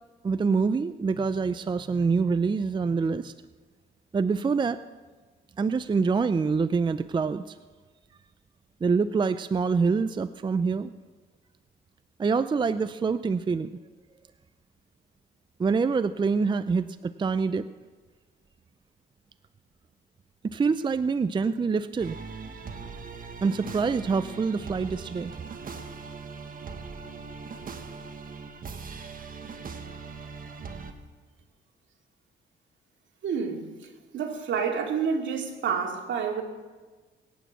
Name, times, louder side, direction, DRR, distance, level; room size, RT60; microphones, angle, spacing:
voice 1, 0.2-3.3 4.1-4.8 5.6-7.5 8.8-10.9 12.2-13.7 15.6-17.7 20.4-22.2 23.4-25.3, right 5 dB, 25° right, 0.5 m, -25 dB
sound 1, 22.0-30.9, right 5 dB, 45° right, 1.5 m, -40 dB
voice 2, 33.2-33.7 34.1-36.4, right 6 dB, 70° right, 2.5 m, -28 dB
21.5 x 9.2 x 7.2 m
cardioid pair, 90°, 20 cm